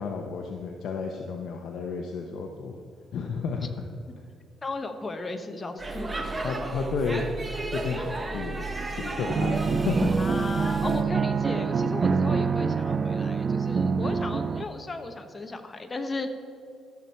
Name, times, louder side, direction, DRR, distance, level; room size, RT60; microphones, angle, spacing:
voice 1, 0.0-2.8 3.1-3.8 6.4-7.2 7.7-8.6 8.9-10.4, left 5 dB, 70° left, 2 dB, 0.8 m, -32 dB
voice 2, 4.6-6.3 10.2-16.5, left 3 dB, 25° left, 7 dB, 1.1 m, -36 dB
Speech / Shout / Subway metro underground, 5.8-11.0, right 3 dB, 20° right, 1.1 m, -33 dB
sound 1, 9.3-14.6, right 5 dB, 45° right, 0.5 m, -25 dB
14.0 x 7.2 x 4.4 m, 2.4 s
cardioid pair, 90°, 0 cm